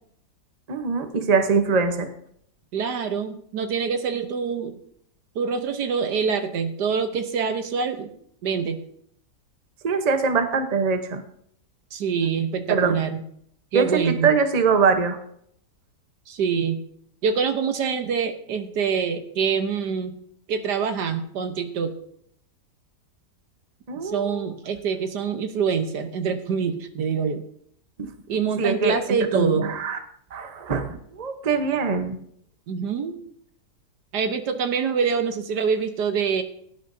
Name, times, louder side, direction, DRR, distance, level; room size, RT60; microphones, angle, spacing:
voice 1, 0.7-2.1 9.8-11.2 12.7-12.9 13.7-15.2 23.9-24.5 28.0-28.1 28.6-29.0 29.3-30.0 30.3-32.2, right 5 dB, 30° right, 7 dB, 0.8 m, -22 dB
voice 2, 2.7-4.8 5.3-8.1 8.4-8.8 11.9-13.2 13.7-14.3 16.3-16.8 17.2-20.2 20.5-22.0 24.0-27.4 28.3-29.7 32.7-33.2 34.1-36.4, right 6 dB, 80° right, 7 dB, 1.6 m, -25 dB
17.0 x 10.0 x 2.7 m, 0.67 s
omnidirectional pair, 1.8 m